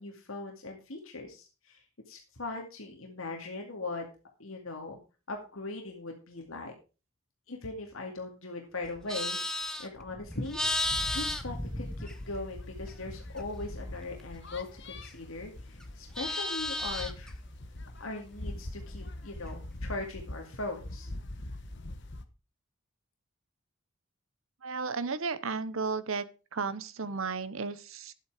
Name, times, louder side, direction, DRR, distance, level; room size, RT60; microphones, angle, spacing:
voice 1, 0.0-4.1 4.4-5.0 5.3-6.7 7.5-10.6 11.1-17.3 18.0-21.1, left 2 dB, 75° left, 2 dB, 2.2 m, -40 dB
Livestock farm animals working animals, 8.8-12.5 12.9-15.4 15.7-17.3, left 1 dB, 5° left, 0.9 m, -35 dB
sound 1, 10.9-22.3, left 1 dB, 55° left, 1.2 m, -43 dB
voice 2, 24.6-26.3 26.5-28.1, right 4 dB, 75° right, 14 dB, 0.9 m, -33 dB
11.5 x 8.4 x 4.9 m, 0.32 s
head